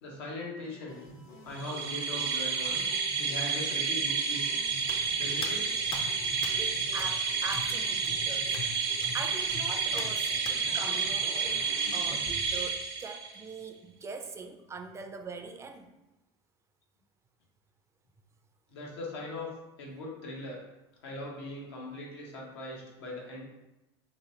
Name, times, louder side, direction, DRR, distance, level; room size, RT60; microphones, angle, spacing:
voice 1, 0.0-1.0 1.4-2.8 3.2-4.6 5.2-5.7 6.1-6.3 8.2-8.3 9.8-10.0 18.7-19.5 19.8-20.6 21.0-23.4, left 1 dB, 85° left, -3 dB, 1.1 m, -40 dB
sound 1, 0.6-12.6, left 1 dB, 65° left, 1.4 m, -49 dB
sound 2, 1.6-13.4, right 5 dB, 85° right, 0.7 m, -30 dB
Hands, 4.8-10.6, left 4 dB, 40° left, 0.5 m, -44 dB
voice 2, 6.6-11.6 11.9-15.9, right 4 dB, 20° right, 6 dB, 0.4 m, -42 dB
3.2 x 3.1 x 2.8 m, 0.95 s
supercardioid pair, 100°, 13 cm